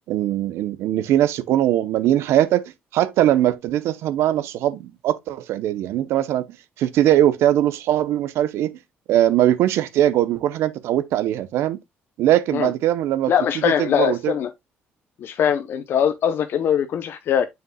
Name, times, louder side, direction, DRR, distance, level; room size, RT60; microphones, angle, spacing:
voice 1, 0.1-6.5 6.8-8.8 9.1-11.8 12.2-13.3 13.6-14.3, right 12 dB, 85° right, 0.7 m, -20 dB
voice 2, 13.3-14.5 15.2-17.5, left 8 dB, 60° left, 0.6 m, -21 dB
6.9 x 6.6 x 2.3 m
cardioid pair, 135°, 4 cm